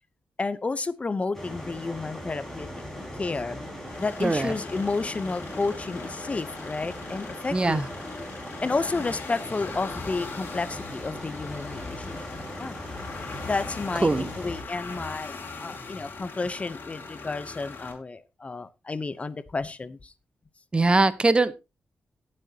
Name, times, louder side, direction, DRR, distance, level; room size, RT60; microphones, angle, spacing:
voice 1, 0.4-2.7 3.2-3.6 4.0-7.8 8.6-12.2 12.6-12.7 13.5-20.1, left 3 dB, 35° left, 0.7 m, -31 dB
sound 1, 1.3-14.6, left 1 dB, 10° left, 5.1 m, -39 dB
sound 2, 3.8-17.9, left 4 dB, 65° left, 4.0 m, -41 dB
voice 2, 4.2-4.5 7.5-7.9 14.0-14.3 20.7-21.5, right 3 dB, 25° right, 0.9 m, -22 dB
18.0 x 7.7 x 2.8 m
cardioid pair, 75°, 4 cm